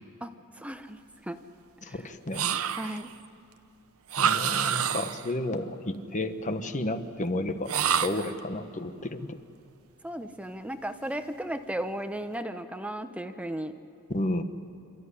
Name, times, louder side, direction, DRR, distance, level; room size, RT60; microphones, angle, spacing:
voice 1, 0.2-1.4 1.8-2.0 2.8-3.1 10.0-13.7, right 1 dB, 5° right, 9 dB, 0.8 m, -35 dB
voice 2, 1.8-2.5 2.8-3.0 4.2-7.7 8.0-9.4 14.1-14.4, left 1 dB, 35° left, 9 dB, 1.2 m, -32 dB
sound 1, 2.3-3.1 4.1-5.3 7.7-8.4, right 8 dB, 70° right, 0.8 m, -27 dB
28.0 x 13.5 x 9.9 m, 2.7 s
head